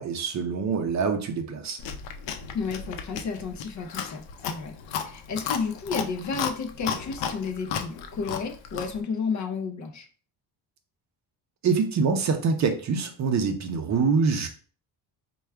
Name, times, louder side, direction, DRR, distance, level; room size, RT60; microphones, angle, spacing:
voice 1, 0.0-1.8 11.6-14.5, right 5 dB, 40° right, 6 dB, 0.5 m, -25 dB
Chewing mastication, 1.8-9.0, left 7 dB, 85° left, 0.6 m, -34 dB
voice 2, 2.5-10.1, left 5 dB, 40° left, 5 dB, 0.5 m, -32 dB
4.5 x 2.3 x 3.3 m, 0.41 s
cardioid pair, 155°, 43 cm